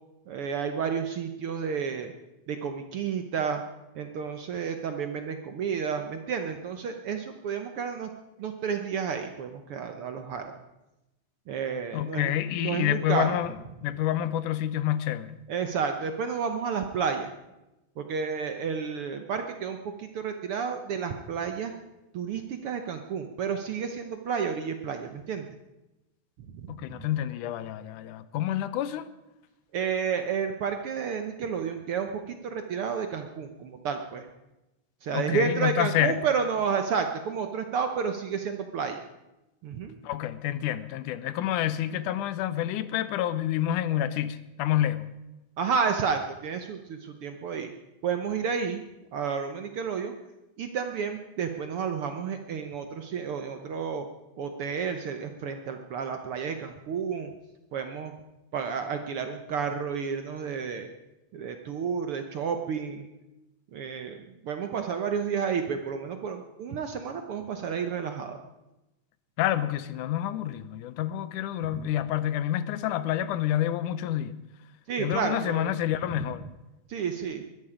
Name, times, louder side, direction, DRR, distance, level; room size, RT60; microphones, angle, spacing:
voice 1, 0.3-2.1 2.5-3.6 3.9-8.1 8.4-10.5 11.5-12.3 12.6-13.4 15.5-17.3 18.0-21.7 22.1-25.5 26.5-27.1 29.7-34.3 35.0-39.0 39.6-40.0 45.6-47.7 48.0-48.8 49.1-50.1 50.6-54.1 54.4-57.3 57.7-58.1 58.5-60.9 61.3-63.1 63.7-68.4 71.6-71.9 74.9-75.8 76.2-76.3 76.9-77.4, right 6 dB, 65° right, 1.4 m, -31 dB
voice 2, 11.9-13.5 13.8-15.4 26.7-29.1 35.1-36.2 40.0-45.1 69.4-74.4 75.0-76.4, left 12 dB, 85° left, 2.3 m, -28 dB
21.0 x 13.0 x 5.0 m
omnidirectional pair, 3.5 m